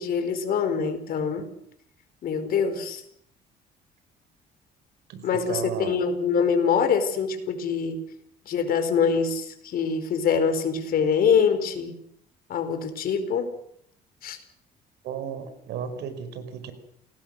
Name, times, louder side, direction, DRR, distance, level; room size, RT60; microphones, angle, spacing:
voice 1, 0.0-1.5 2.2-3.0 5.2-8.0 8.4-11.9 12.5-13.6 14.2-14.4, left 6 dB, 60° left, 8 dB, 4.7 m, -24 dB
voice 2, 5.1-6.0 15.0-16.7, right 8 dB, 80° right, 10 dB, 4.9 m, -34 dB
29.0 x 19.0 x 6.7 m, 0.68 s
cardioid pair, 110°, 17 cm